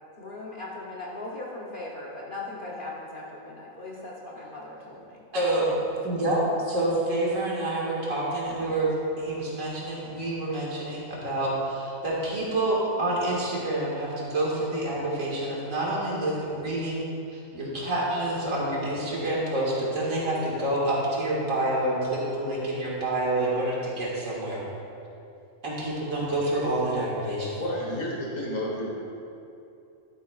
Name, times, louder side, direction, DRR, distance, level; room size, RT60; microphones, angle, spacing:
voice 1, 0.2-5.7, left 2 dB, 45° left, -4 dB, 1.0 m, -39 dB
voice 2, 5.3-5.7 6.0-17.1 17.3-24.6 25.6-27.5, right 1 dB, 80° right, -5 dB, 2.3 m, -28 dB
voice 3, 27.4-28.9, left 1 dB, 85° left, -3 dB, 1.8 m, -31 dB
12.5 x 8.4 x 2.4 m, 2.7 s
omnidirectional pair, 1.4 m